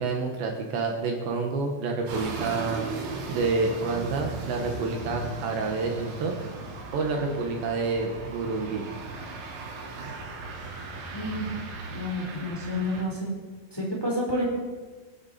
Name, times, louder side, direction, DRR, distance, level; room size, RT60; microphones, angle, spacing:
voice 1, 0.0-2.9 3.3-6.3 6.9-8.9, right 4 dB, 70° right, 2 dB, 3.3 m, -28 dB
sound 1, 2.1-13.0, right 3 dB, 85° right, 5.6 m, -37 dB
voice 2, 11.1-11.5 11.9-13.3 13.7-14.5, left 1 dB, 5° left, -2 dB, 3.1 m, -29 dB
24.0 x 11.5 x 4.3 m, 1.4 s
omnidirectional pair, 5.7 m